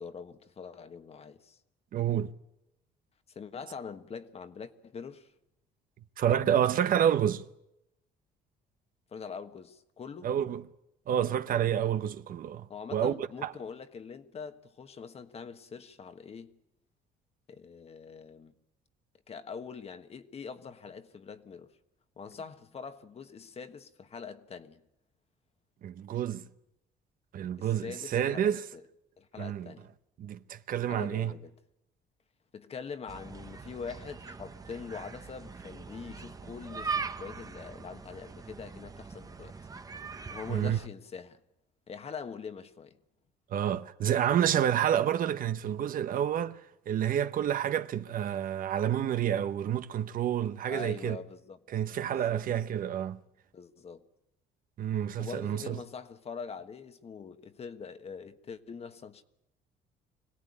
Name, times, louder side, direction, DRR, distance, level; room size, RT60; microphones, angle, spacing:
voice 1, 0.0-1.6 3.3-5.3 9.1-10.3 12.7-16.5 17.5-18.5 19.3-21.7 22.2-24.8 27.6-28.8 29.2-29.9 30.9-31.6 32.5-39.5 40.3-41.4 41.9-43.0 50.7-51.6 52.1-52.5 53.5-54.0 55.2-59.2, left 6 dB, 35° left, 1.4 m, -43 dB
voice 2, 1.9-2.3 6.2-7.4 10.2-10.6 11.1-12.7 12.9-13.5 25.8-26.4 27.3-28.6 29.4-29.7 30.2-31.3 40.5-40.8 43.5-46.6 46.9-51.2 51.7-53.2 54.8-55.8, right 10 dB, 55° right, 0.9 m, -29 dB
sound 1, 33.1-40.9, right 5 dB, 20° right, 1.0 m, -41 dB
25.0 x 17.0 x 9.8 m
cardioid pair, 110°, 17 cm